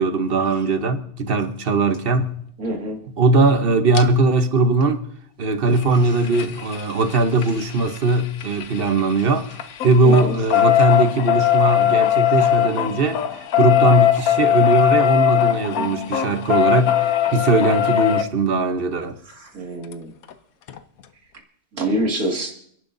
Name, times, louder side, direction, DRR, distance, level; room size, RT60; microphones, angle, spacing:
voice 1, 0.0-2.4 3.2-5.0 5.4-9.5 9.8-13.2 13.6-19.1, right 3 dB, 45° right, 1.1 m, -19 dB
voice 2, 2.6-3.0 10.0-10.4 19.4-20.1 21.7-22.5, right 1 dB, 85° right, 2.6 m, -25 dB
sound 1, 3.9-4.0 5.7-9.2 9.5-18.2 19.9-20.0 20.3-20.4 20.7-20.8, left 11 dB, 80° left, 1.2 m, -20 dB
29.5 x 11.0 x 2.7 m
omnidirectional pair, 1.5 m